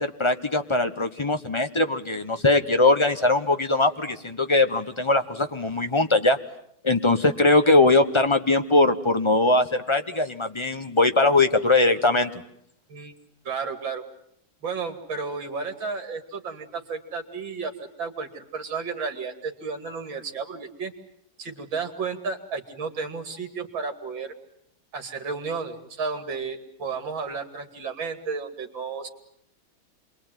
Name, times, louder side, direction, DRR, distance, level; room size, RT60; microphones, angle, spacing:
voice 1, 0.0-6.4 6.8-12.3, left 2 dB, 20° left, 8 dB, 0.8 m, -21 dB
voice 2, 13.4-14.0 14.6-20.9 21.4-24.3 24.9-29.1, right 5 dB, 65° right, 6 dB, 3.2 m, -32 dB
27.5 x 23.0 x 9.2 m, 0.71 s
omnidirectional pair, 2.3 m